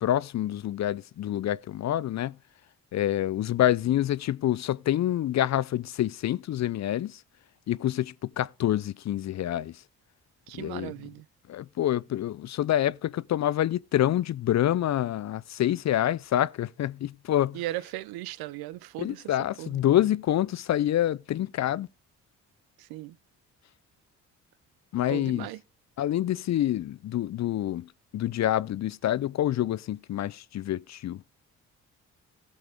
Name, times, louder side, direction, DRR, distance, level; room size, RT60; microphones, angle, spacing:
voice 1, 0.0-2.4 2.9-7.2 7.7-9.8 10.5-10.9 11.5-17.6 19.0-21.9 24.9-25.5 26.0-31.2, left 12 dB, 45° left, 0.5 m, -27 dB
voice 2, 10.5-11.2 17.5-19.8 22.8-23.2 25.1-25.6, right 15 dB, 75° right, 0.7 m, -37 dB
17.0 x 7.1 x 3.5 m
hypercardioid pair, 50°, 37 cm